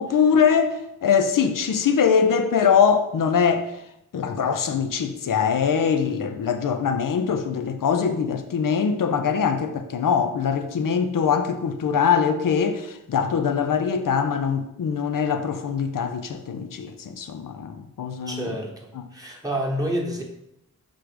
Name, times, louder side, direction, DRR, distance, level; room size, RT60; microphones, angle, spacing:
voice 1, 0.0-3.7 4.1-18.5 18.9-19.1, left 6 dB, 90° left, 0.6 m, -22 dB
voice 2, 18.2-20.2, right 1 dB, 10° right, 1.0 m, -29 dB
5.9 x 3.8 x 4.9 m
wide cardioid pair, 120°, 32 cm